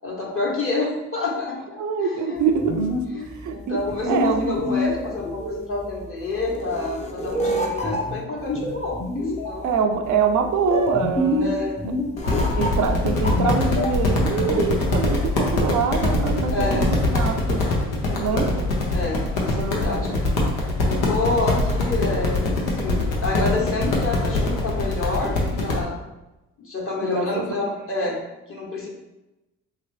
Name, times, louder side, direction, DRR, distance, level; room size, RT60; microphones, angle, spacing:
voice 1, 0.0-2.8 3.1-9.7 11.4-12.2 16.5-16.9 18.0-18.5 18.9-20.2 20.9-26.0 26.6-28.9, left 3 dB, 35° left, -2 dB, 1.2 m, -28 dB
voice 2, 1.8-2.8 3.1-3.8 4.1-4.6 9.6-11.5 12.6-17.6 18.1-18.5 19.5-20.2 27.0-27.5 28.0-28.1, right 6 dB, 55° right, 4 dB, 0.5 m, -25 dB
sound 1, 2.4-14.9, left 1 dB, 20° left, 0.7 m, -27 dB
sound 2, 12.2-25.8, left 2 dB, 80° left, 0.9 m, -23 dB
2.9 x 2.9 x 3.2 m, 1.0 s
hypercardioid pair, 55°, 36 cm